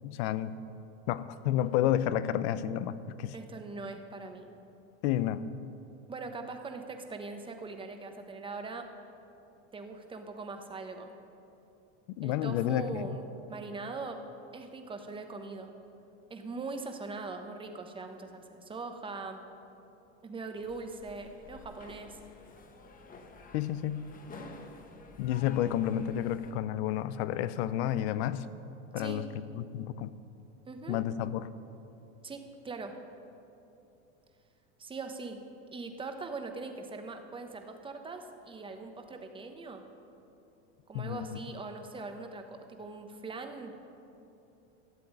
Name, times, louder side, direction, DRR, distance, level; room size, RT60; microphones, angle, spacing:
voice 1, 0.0-0.5 1.1-3.3 5.0-5.5 12.2-13.1 23.5-24.0 25.2-28.4 28.9-30.1 30.9-31.5 40.9-41.4, left 11 dB, 70° left, 15 dB, 0.7 m, -31 dB
voice 2, 3.3-4.5 6.1-8.9 9.7-11.1 12.2-14.2 14.5-15.7 16.3-19.4 20.2-22.2 24.4-24.6 29.0-29.2 30.7-31.0 32.2-32.9 34.8-35.4 35.7-39.8 40.9-43.7, right 3 dB, 15° right, 5 dB, 1.1 m, -41 dB
sound 1, 20.5-26.5, left 3 dB, 25° left, 1.2 m, -51 dB
13.0 x 7.7 x 9.5 m, 2.8 s
supercardioid pair, 130°, 34 cm